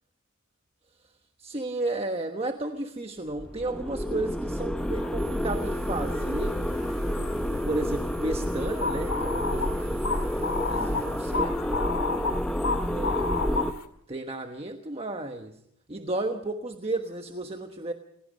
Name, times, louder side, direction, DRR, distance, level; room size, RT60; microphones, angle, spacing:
voice 1, 1.4-6.6 7.6-10.2 10.7-11.9 12.9-13.5 14.1-15.6 15.9-17.9, right 2 dB, 25° right, 5 dB, 1.2 m, -33 dB
sound 1, 3.3-13.7, equal, 5° left, 0.7 m, -29 dB
sound 2, 4.9-5.1 5.5-13.9, left 4 dB, 65° left, 2.2 m, -33 dB
sound 3, 5.2-11.4, right 8 dB, 65° right, 2.0 m, -51 dB
29.0 x 17.5 x 5.3 m, 0.71 s
head